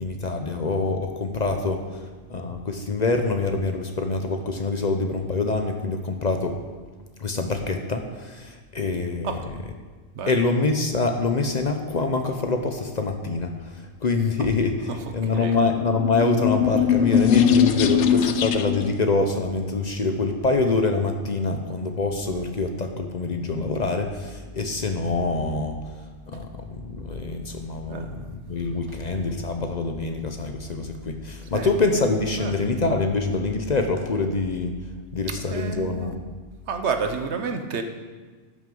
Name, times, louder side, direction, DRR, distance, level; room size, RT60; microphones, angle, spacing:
voice 1, 0.0-1.8 2.3-6.6 7.2-9.6 10.3-13.5 14.0-25.8 26.3-28.1 28.5-34.7 35.1-36.2, left 3 dB, 45° left, 5 dB, 0.8 m, -25 dB
sound 1, 16.0-19.0, left 8 dB, 80° left, 0.9 m, -20 dB
voice 2, 27.9-28.3 31.5-31.7 32.4-32.5 35.5-36.1 36.7-37.8, right 5 dB, 75° right, 7 dB, 1.1 m, -30 dB
12.0 x 6.3 x 5.3 m, 1.4 s
omnidirectional pair, 1.2 m